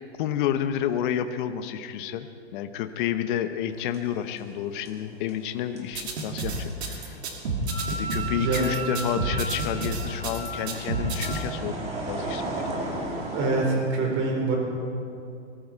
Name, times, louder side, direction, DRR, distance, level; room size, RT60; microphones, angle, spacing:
voice 1, 0.2-7.2 7.9-12.6, left 10 dB, 50° left, 9 dB, 0.9 m, -30 dB
sound 1, 3.7-4.6 4.9-13.7, right 2 dB, 20° right, 2.7 m, -37 dB
sound 2, 5.9-11.4, right 3 dB, 70° right, 2.6 m, -30 dB
Wind instrument woodwind instrument, 7.7-11.4, right 3 dB, 10° left, 2.2 m, -36 dB
voice 2, 8.3-8.7 13.3-14.6, right 3 dB, 35° right, 0 dB, 4.3 m, -25 dB
20.5 x 13.0 x 4.5 m, 2.5 s
hypercardioid pair, 125°, 33 cm